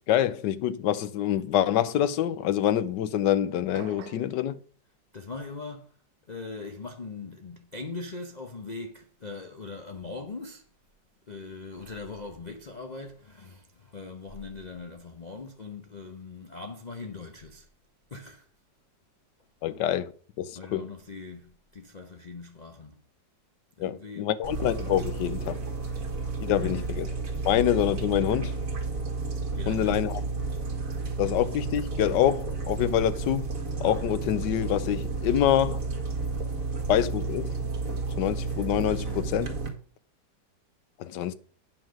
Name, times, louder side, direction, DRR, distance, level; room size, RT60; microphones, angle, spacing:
voice 1, 0.1-4.6 19.6-20.1 20.4-20.9 23.8-25.6 26.4-27.1 27.4-28.6 29.7-30.2 31.2-33.5 33.8-35.8 36.9-37.5 38.2-39.6 41.0-41.3, left 11 dB, 85° left, 1.3 m, -26 dB
sound 1, 3.7-4.4, right 7 dB, 80° right, 1.5 m, -44 dB
voice 2, 5.1-6.0 6.3-10.6 11.3-17.7 18.1-18.5 20.6-23.0 23.8-24.3 26.6-26.9 29.5-30.0, left 3 dB, 35° left, 0.7 m, -40 dB
sound 2, 24.4-39.7, right 4 dB, 50° right, 2.1 m, -32 dB
8.9 x 5.5 x 6.3 m
omnidirectional pair, 1.9 m